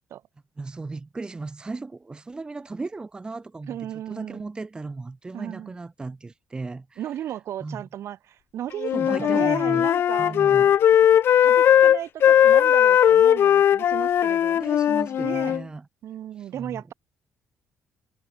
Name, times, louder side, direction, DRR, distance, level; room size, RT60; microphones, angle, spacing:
voice 1, 0.6-3.8 4.1-7.0 7.6-7.8 8.9-9.9 10.2-10.7 14.5-15.8 16.4-16.8, right 3 dB, 15° right, 1.4 m, -36 dB
voice 2, 3.7-4.4 5.3-5.8 7.0-10.7 11.4-14.6 15.2-15.6 16.0-16.9, right 11 dB, 65° right, 3.3 m, -35 dB
Wind instrument woodwind instrument, 8.8-15.6, left 10 dB, 50° left, 0.4 m, -18 dB
cardioid pair, 155°, 5 cm